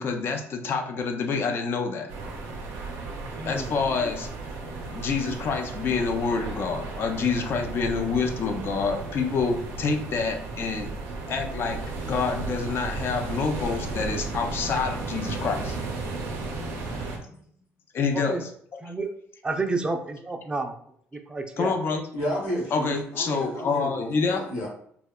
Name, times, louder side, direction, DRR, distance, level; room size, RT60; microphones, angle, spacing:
voice 1, 0.0-2.1 3.5-4.3 4.9-10.9 11.3-15.8 17.9-18.5 21.6-22.1 22.7-24.5, left 4 dB, 50° left, 4 dB, 0.4 m, -27 dB
sound 1, 2.1-17.2, right 3 dB, 90° right, 0.5 m, -34 dB
voice 2, 3.4-3.7 16.8-17.1 18.1-18.4 18.8-19.1 19.4-20.7 21.1-21.7, right 3 dB, 20° right, 6 dB, 0.3 m, -30 dB
voice 3, 22.1-24.7, equal, 85° left, -3 dB, 0.9 m, -32 dB
2.7 x 2.1 x 2.2 m, 0.64 s
cardioid pair, 95°, 5 cm